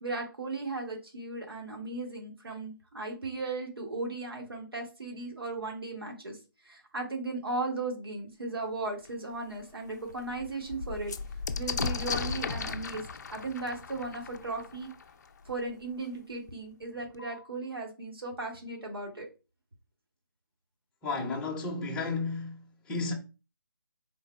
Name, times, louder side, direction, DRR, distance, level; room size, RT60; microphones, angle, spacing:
voice 1, 0.0-6.4 6.6-11.1 11.6-13.1 13.3-14.9 15.4-19.3, right 3 dB, 85° right, 1.4 m, -36 dB
sound 1, 9.0-9.1 9.6-9.7 10.0-15.5 16.5-16.6 16.8-17.4, left 5 dB, 50° left, 0.4 m, -36 dB
voice 2, 21.0-23.1, left 3 dB, 5° left, 0.6 m, -33 dB
3.8 x 2.2 x 4.1 m
figure-of-eight pair, 155°, 12 cm